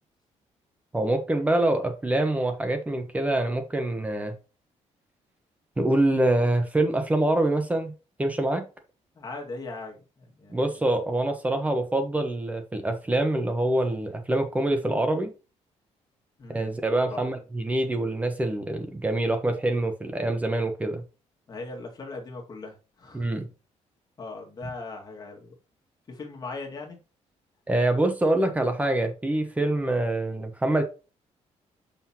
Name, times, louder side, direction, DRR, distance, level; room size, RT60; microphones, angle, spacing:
voice 1, 0.9-4.3 5.8-7.9 8.2-8.7 10.5-15.3 16.5-21.0 23.1-23.5 27.7-30.8, right 1 dB, 10° right, 6 dB, 1.0 m, -25 dB
voice 2, 9.2-10.7 16.4-16.8 17.1-17.2 21.5-23.3 24.2-25.5 26.1-27.0, left 3 dB, 35° left, 0 dB, 2.1 m, -39 dB
6.6 x 5.8 x 3.0 m, 0.31 s
cardioid pair, 160°, 12 cm